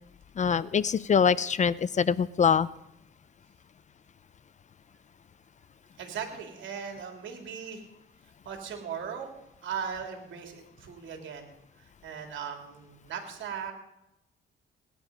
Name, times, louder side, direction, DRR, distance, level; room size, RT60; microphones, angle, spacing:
voice 1, 0.4-2.7, left 6 dB, 35° left, 18 dB, 0.5 m, -24 dB
voice 2, 6.0-7.8 8.4-9.3 9.6-11.5 11.8-13.7, right 7 dB, 75° right, 4 dB, 3.5 m, -38 dB
19.0 x 11.0 x 5.3 m, 0.87 s
cardioid pair, 90°, 20 cm